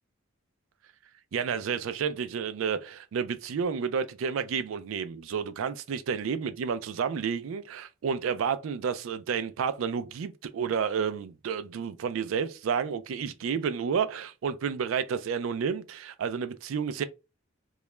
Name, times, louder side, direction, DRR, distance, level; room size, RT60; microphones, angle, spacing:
voice 1, 1.3-17.0, right 6 dB, 80° right, 0.4 m, -30 dB
2.3 x 2.0 x 3.0 m
head